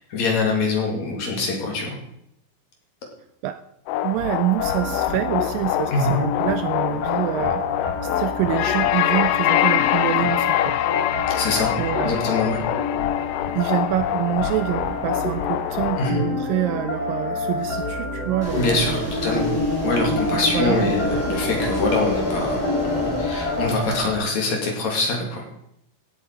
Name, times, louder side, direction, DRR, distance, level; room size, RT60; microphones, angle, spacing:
voice 1, 0.0-2.0 5.9-6.1 11.4-11.7 12.0-12.6 16.0-16.2 18.6-19.5 19.8-22.6 22.8-25.5, left 3 dB, 50° left, 1 dB, 3.4 m, -24 dB
sound 1, 3.9-16.1, left 13 dB, 80° left, 2.0 m, -24 dB
voice 2, 4.0-7.6 8.0-10.7 11.8-12.3 13.6-19.1 20.5-20.9, right 13 dB, 80° right, 11 dB, 2.1 m, -26 dB
sound 2, 4.6-23.8, left 3 dB, 35° left, 1.7 m, -29 dB
sound 3, 18.4-24.2, equal, 5° left, 2.7 m, -27 dB
16.0 x 8.2 x 4.5 m, 0.74 s
omnidirectional pair, 4.3 m